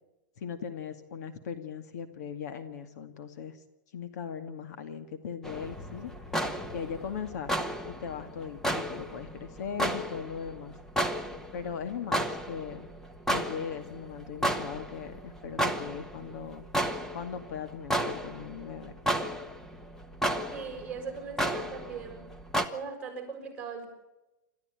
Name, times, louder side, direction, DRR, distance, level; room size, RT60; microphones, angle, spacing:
voice 1, 0.4-3.6 3.9-6.1 6.7-7.6 7.9-10.7 11.5-12.9 13.3-16.6 17.1-19.0, left 7 dB, 60° left, 9 dB, 2.2 m, -39 dB
sound 1, 5.4-22.7, right 1 dB, 5° left, 1.2 m, -33 dB
voice 2, 20.5-22.3 22.7-23.9, right 5 dB, 10° right, 2 dB, 6.4 m, -39 dB
28.0 x 14.0 x 9.1 m, 1.0 s
supercardioid pair, 165°, 10 cm